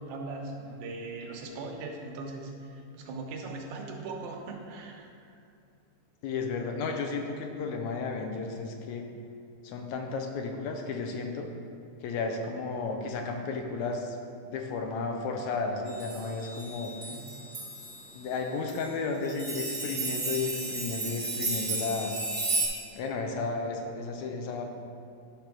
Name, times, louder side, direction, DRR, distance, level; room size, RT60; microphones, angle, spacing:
voice 1, 0.0-5.4 17.1-17.3, right 3 dB, 90° right, 1 dB, 2.3 m, -40 dB
voice 2, 6.2-9.1 9.6-11.5 12.0-14.2 14.4-16.9 18.1-22.2 22.9-24.7, left 4 dB, 75° left, 3 dB, 1.9 m, -33 dB
sound 1, 15.9-18.0 18.7-18.9 19.2-22.7, right 3 dB, 15° right, 1.5 m, -33 dB
10.5 x 3.5 x 6.0 m, 2.4 s
omnidirectional pair, 3.5 m